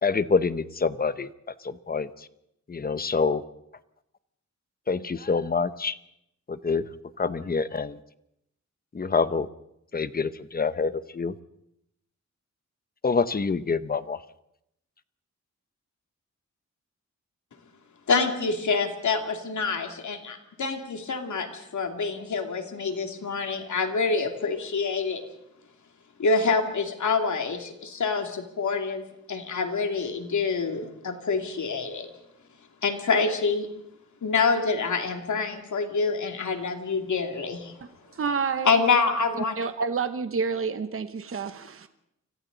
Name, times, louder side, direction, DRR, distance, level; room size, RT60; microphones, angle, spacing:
voice 1, 0.0-1.3 1.6-2.3 2.7-3.4 4.9-6.0 6.5-6.9 7.2-8.0 8.9-9.5 9.9-11.4 13.0-14.2, left 4 dB, 30° left, 13 dB, 0.8 m, -26 dB
voice 2, 18.1-25.2 26.2-32.1 32.8-33.7 34.2-37.8 38.6-39.6, left 4 dB, 80° left, 4 dB, 2.7 m, -26 dB
voice 3, 38.1-38.8 39.6-41.9, right 5 dB, 50° right, 10 dB, 1.1 m, -29 dB
30.0 x 25.0 x 4.0 m, 0.79 s
wide cardioid pair, 180°, 29 cm